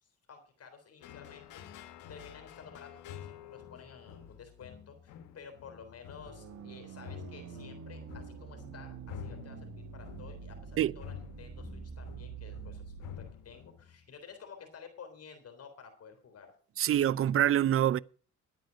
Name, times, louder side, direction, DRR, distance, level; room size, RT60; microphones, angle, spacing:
voice 1, 0.0-16.5, left 6 dB, 55° left, 3.6 m, -52 dB
sound 1, 1.0-14.2, left 9 dB, 85° left, 1.4 m, -49 dB
sound 2, 6.3-13.3, right 6 dB, 65° right, 2.3 m, -46 dB
voice 2, 16.8-18.0, right 11 dB, 45° right, 0.5 m, -25 dB
11.0 x 9.2 x 6.4 m
cardioid pair, 90°, 30 cm